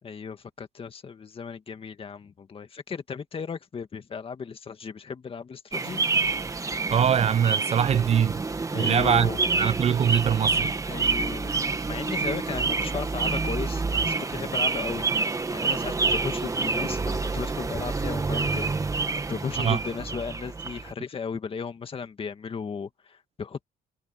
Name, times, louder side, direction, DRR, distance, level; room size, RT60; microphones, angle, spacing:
voice 1, 0.0-6.0 8.7-9.4 10.9-18.7 19.3-23.6, left 6 dB, 35° left, 2.1 m, -35 dB
sound 1, 5.7-20.9, right 4 dB, 20° right, 1.4 m, -28 dB
voice 2, 6.9-8.4 8.7-9.3 9.6-10.7 19.6-19.8, right 8 dB, 40° right, 0.6 m, -22 dB
cardioid pair, 110°, 17 cm